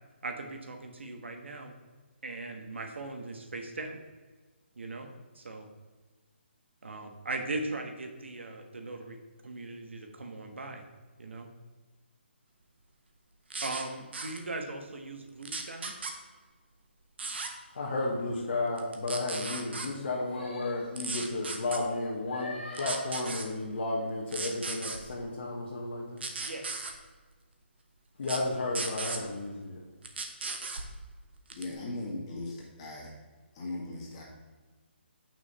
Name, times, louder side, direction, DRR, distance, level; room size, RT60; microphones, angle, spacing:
voice 1, 0.2-1.7 2.2-4.0 4.8-5.1 5.3-5.7 6.8-9.2 9.4-10.8 11.2-11.5 13.6-15.9 26.4-26.9, right 2 dB, 75° right, 4 dB, 1.4 m, -39 dB
sound 1, 13.5-13.8 14.1-14.4 15.4-16.1 17.2-17.5 18.8-19.9 21.0-21.8 22.7-23.5 24.3-25.0 26.2-26.9 28.2-28.4 28.7-29.2 30.0-30.9 31.5-31.7, right 4 dB, 60° right, 1.2 m, -36 dB
voice 2, 17.7-26.2 28.2-29.8, left 2 dB, 50° left, -4 dB, 1.5 m, -33 dB
voice 3, 31.6-33.2 33.5-34.2, left 2 dB, 25° left, -3 dB, 1.9 m, -38 dB
7.3 x 6.1 x 4.2 m, 1.4 s
hypercardioid pair, 165°, 6 cm